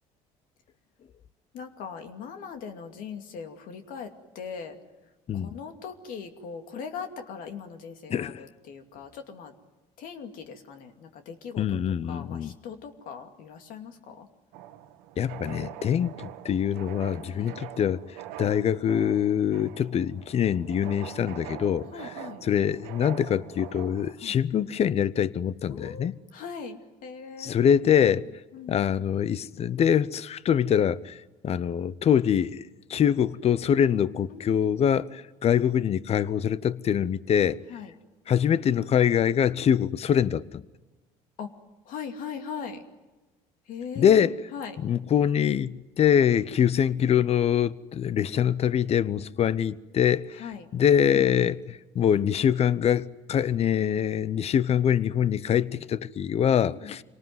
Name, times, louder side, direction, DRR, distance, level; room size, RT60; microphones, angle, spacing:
voice 1, 1.5-4.8 5.3-9.5 10.0-14.3 17.3-17.6 21.9-22.5 24.2-24.4 25.7-27.6 28.5-28.9 34.3-34.9 37.7-37.9 41.4-41.6 41.9-42.8 43.7-44.8 50.4-50.7 56.6-57.0, left 6 dB, 70° left, 2.6 m, -40 dB
voice 2, 8.1-8.4 11.6-12.5 15.2-22.1 22.4-26.1 27.4-28.3 28.7-37.6 38.3-40.6 44.0-44.3 44.8-50.4 50.7-57.0, left 9 dB, 45° left, 0.8 m, -24 dB
sound 1, 14.5-24.1, right 12 dB, 80° right, 1.3 m, -43 dB
26.5 x 19.0 x 9.5 m
supercardioid pair, 85°, 15 cm